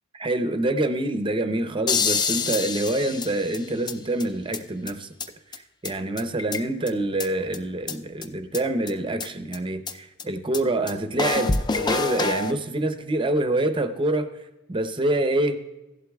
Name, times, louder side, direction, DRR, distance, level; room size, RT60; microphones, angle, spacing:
voice 1, 0.1-5.1 5.5-14.3 14.7-15.6, right 1 dB, 25° right, 8 dB, 0.6 m, -26 dB
sound 1, 1.9-3.9 4.2-4.3 4.5-4.6 4.9-5.0 5.2-5.3 5.5-5.6 5.8-5.9 6.2-6.9 7.2-7.3 7.5-7.6 7.9-8.0 8.2-8.3 8.5-8.6 8.9-9.0 9.2-9.3 9.5-9.6 9.9-10.0 10.2-10.3 10.5-10.6 10.9-11.0 11.2-12.5, left 4 dB, 20° left, 0.4 m, -26 dB
16.0 x 11.5 x 2.3 m, 1.0 s
head